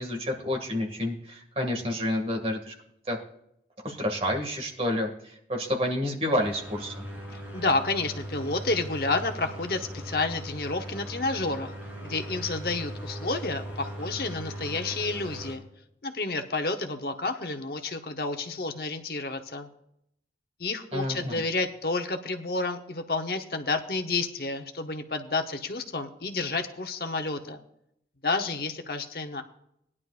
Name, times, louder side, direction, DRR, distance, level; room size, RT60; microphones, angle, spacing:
voice 1, 0.0-2.7 3.1-3.2 3.8-7.1 20.9-21.4, left 1 dB, 35° right, 2 dB, 2.1 m, -29 dB
sound 1, 6.4-15.5, right 1 dB, 10° right, 3.2 m, -39 dB
voice 2, 7.3-11.7 12.0-15.6 16.0-19.7 20.6-27.6 28.2-29.4, left 3 dB, 60° left, 5 dB, 1.0 m, -30 dB
19.5 x 11.0 x 2.5 m, 0.73 s
head